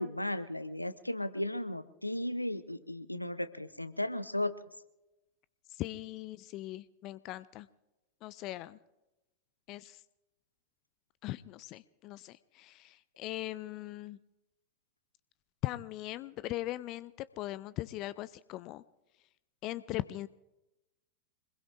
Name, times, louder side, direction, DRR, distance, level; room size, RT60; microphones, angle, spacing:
voice 1, 0.0-4.5, left 1 dB, 85° left, 13 dB, 0.7 m, -35 dB
voice 2, 5.8-7.7 8.2-8.8 9.7-10.0 11.2-14.2 15.6-17.1 17.4-18.8 19.6-20.3, left 16 dB, 40° left, 17 dB, 0.4 m, -39 dB
26.0 x 21.0 x 2.6 m, 0.98 s
figure-of-eight pair, 90°, 0 cm